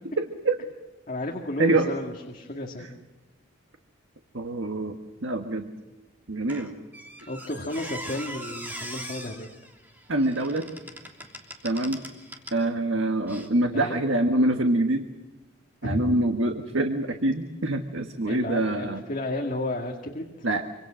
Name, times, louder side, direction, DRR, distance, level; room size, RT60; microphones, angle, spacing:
voice 1, 0.2-0.6 1.6-1.9 4.3-5.7 6.3-6.7 7.2-7.3 10.1-10.7 11.6-12.0 12.5-15.0 15.8-19.0 20.4-20.6, right 2 dB, 70° right, 5 dB, 1.6 m, -25 dB
voice 2, 1.1-2.9 7.3-9.5 13.6-14.0 15.8-16.1 18.3-20.2, left 1 dB, 40° left, 1 dB, 2.1 m, -32 dB
Squeak, 6.5-12.6 13.3-13.5, equal, 10° right, 3.1 m, -41 dB
26.5 x 26.5 x 6.4 m, 1.1 s
head